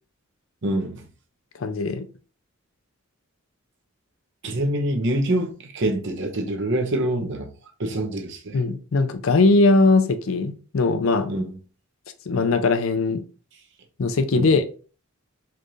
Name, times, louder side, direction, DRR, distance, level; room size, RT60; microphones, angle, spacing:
voice 1, 0.6-1.1 4.4-7.5 7.8-8.6 11.3-11.5 14.3-14.5, right 1 dB, 60° right, 0.7 m, -25 dB
voice 2, 1.6-2.0 8.5-11.3 12.3-13.2 14.0-14.6, left 3 dB, 70° left, 0.5 m, -20 dB
4.4 x 2.5 x 3.0 m
head